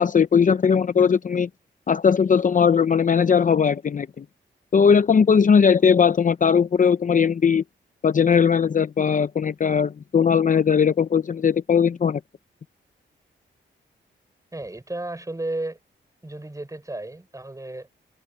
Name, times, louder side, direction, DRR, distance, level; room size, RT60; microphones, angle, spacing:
voice 1, 0.0-1.5 1.9-4.2 4.7-7.6 8.0-12.2, left 6 dB, 40° left, 0.6 m, -19 dB
voice 2, 14.5-15.8 16.2-17.9, right 2 dB, 15° right, 6.0 m, -33 dB
cardioid pair, 90°, 20 cm